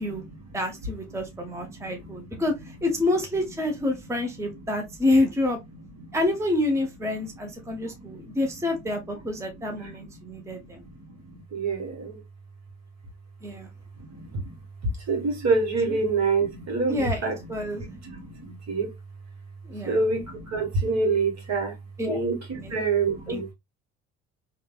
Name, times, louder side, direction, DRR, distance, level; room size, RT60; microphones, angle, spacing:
voice 1, 0.0-2.5 3.8-5.0 5.8-6.2 7.1-8.9 9.3-12.2 14.0-14.5 14.8-18.9 19.8-21.8 22.1-23.5, right 3 dB, 50° right, 1.3 m, -29 dB
voice 2, 0.5-5.6 6.1-10.8 13.4-13.7 16.9-17.8 19.6-20.0 22.0-22.2 22.6-22.7 23.3-23.4, left 2 dB, 10° right, 0.8 m, -27 dB
3.1 x 2.3 x 2.3 m
hypercardioid pair, 50°, 35 cm